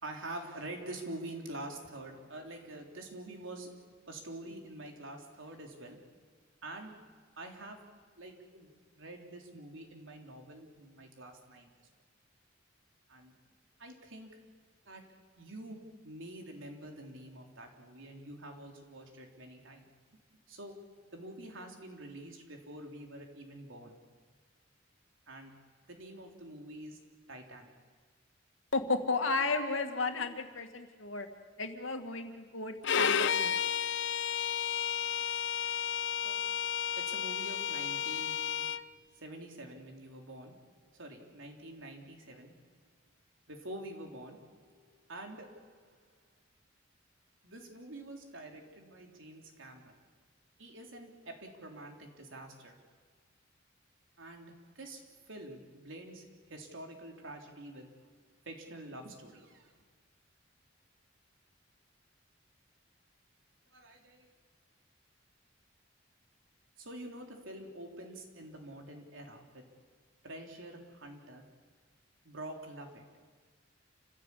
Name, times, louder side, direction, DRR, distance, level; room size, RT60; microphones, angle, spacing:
voice 1, 0.0-6.1 6.6-7.9 8.2-11.7 13.1-13.3 13.8-14.3 14.9-19.9 20.5-24.0 25.3-25.6 25.9-27.0 27.3-27.7 36.2-36.5 37.0-42.6 43.5-46.1 47.4-50.0 50.6-52.9 54.2-58.1 58.5-59.7 63.7-64.3 66.8-69.9 70.2-71.5 72.2-73.3, right 1 dB, 90° right, 2 dB, 3.6 m, -47 dB
voice 2, 28.7-31.3 31.6-33.5, left 3 dB, 85° left, 5 dB, 2.3 m, -33 dB
Bowed string instrument, 32.8-38.8, left 8 dB, 65° left, 0.7 m, -32 dB
28.5 x 15.5 x 8.5 m, 1.5 s
head